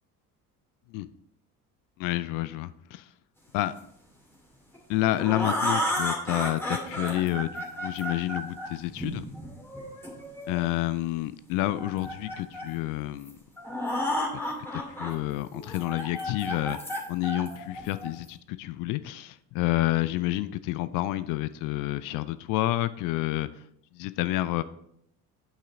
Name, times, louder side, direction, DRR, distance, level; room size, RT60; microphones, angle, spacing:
voice 1, 2.0-3.1 3.5-3.7 4.9-9.2 10.5-13.4 14.7-16.8 17.1-23.6 23.9-24.6, left 16 dB, 45° left, 15 dB, 0.4 m, -29 dB
sound 1, 4.7-10.6 11.6-12.7 13.2-13.3 13.6-15.1 15.5-18.3, equal, 5° left, 2.3 m, -32 dB
8.5 x 5.7 x 3.7 m, 0.74 s
figure-of-eight pair, 60°, 45 cm